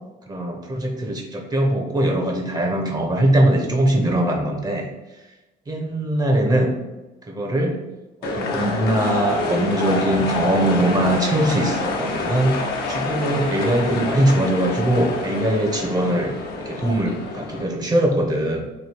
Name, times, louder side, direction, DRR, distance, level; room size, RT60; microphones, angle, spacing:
voice 1, 0.3-4.9 5.7-6.7 7.3-7.8 8.2-16.3 16.6-18.7, right 1 dB, 25° right, 1 dB, 0.7 m, -21 dB
sound 1, 8.2-17.6, left 3 dB, 70° left, 0.8 m, -27 dB
3.1 x 2.7 x 4.3 m, 1.1 s
cardioid pair, 110°, 17 cm